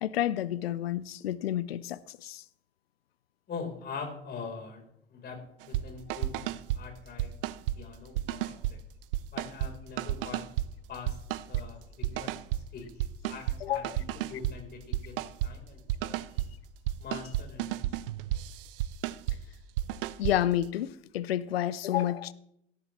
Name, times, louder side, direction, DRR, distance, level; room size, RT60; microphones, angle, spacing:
voice 1, 0.0-2.4 13.6-14.0 20.2-22.3, left 12 dB, 75° left, 0.6 m, -30 dB
voice 2, 3.5-4.8 5.1-7.3 7.7-8.8 9.3-10.5 10.9-12.3 12.7-13.8 14.1-15.2 15.4-16.5 17.0-18.1, left 5 dB, 30° left, 4.0 m, -43 dB
sound 1, 5.6-5.8 6.1-6.8 7.2-7.8 8.2-8.7 9.1-9.7 10.0-10.7 11.1-11.6 12.0-12.6 13.0-13.6 13.8-14.5 14.9-15.5 15.9-16.5 16.9-19.4 19.8-20.4, right 14 dB, 60° right, 0.7 m, -31 dB
18.0 x 13.0 x 3.2 m
figure-of-eight pair, 75°, 30 cm